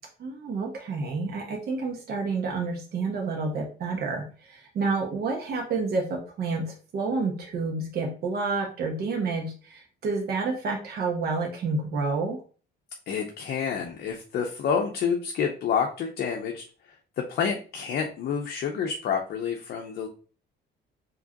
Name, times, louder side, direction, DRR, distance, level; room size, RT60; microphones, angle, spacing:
voice 1, 0.2-12.4, right 4 dB, 55° right, 1 dB, 1.0 m, -29 dB
voice 2, 13.1-16.6 17.3-20.1, left 6 dB, 55° left, 1 dB, 0.7 m, -28 dB
4.8 x 2.9 x 2.8 m, 0.38 s
cardioid pair, 135°, 19 cm